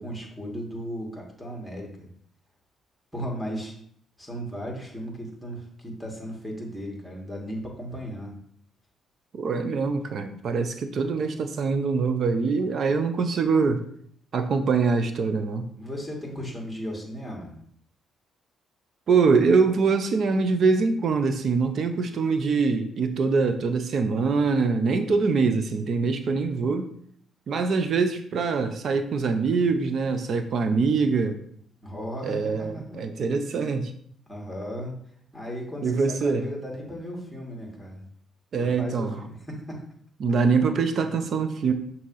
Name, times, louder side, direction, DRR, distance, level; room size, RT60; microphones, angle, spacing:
voice 1, 0.0-2.1 3.1-3.7 4.2-8.3 15.8-17.6 31.8-33.0 34.3-35.0 35.3-38.0 38.6-39.8, equal, ahead, -1 dB, 2.2 m, -36 dB
voice 2, 9.3-13.8 14.3-15.7 19.1-26.9 27.5-31.4 32.2-33.9 35.8-36.5 38.5-39.2 40.2-41.7, right 4 dB, 60° right, 8 dB, 0.7 m, -24 dB
6.3 x 3.0 x 5.6 m, 0.63 s
cardioid pair, 90°, 0 cm